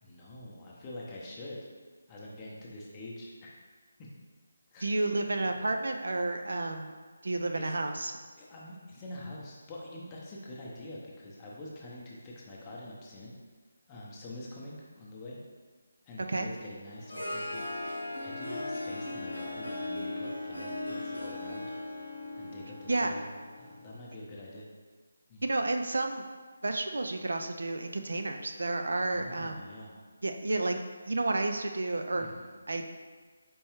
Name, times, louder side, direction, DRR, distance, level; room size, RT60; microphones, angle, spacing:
voice 1, 0.0-1.6 2.1-3.5 4.0-4.1 4.7-4.9 5.4-5.5 7.5-7.7 8.4-13.3 13.9-15.4 16.0-17.7 18.2-21.7 22.4-23.3 23.6-24.7 25.3-25.5 29.1-30.0 32.2-32.5, left 1 dB, 20° left, -4 dB, 0.6 m, -45 dB
voice 2, 4.8-6.9 7.2-8.1 16.2-16.5 22.9-23.2 25.4-26.2 26.6-29.7 30.2-30.8 31.1-32.3 32.7-32.9, right 2 dB, 60° right, 5 dB, 0.3 m, -31 dB
Harp, 16.9-24.0, left 2 dB, 90° left, 0.8 m, -38 dB
4.5 x 3.1 x 3.0 m, 1.5 s
figure-of-eight pair, 155°, 0 cm